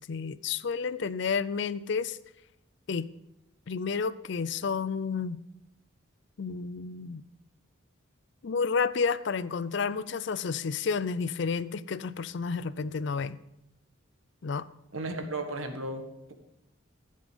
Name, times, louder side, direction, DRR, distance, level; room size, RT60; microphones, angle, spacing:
voice 1, 0.0-2.2 2.9-3.1 3.7-5.4 6.4-7.2 8.4-13.4 14.4-14.7, left 5 dB, 55° left, 17 dB, 0.4 m, -31 dB
voice 2, 14.9-16.0, right 2 dB, 80° right, 5 dB, 1.6 m, -34 dB
14.0 x 7.6 x 5.2 m, 0.86 s
head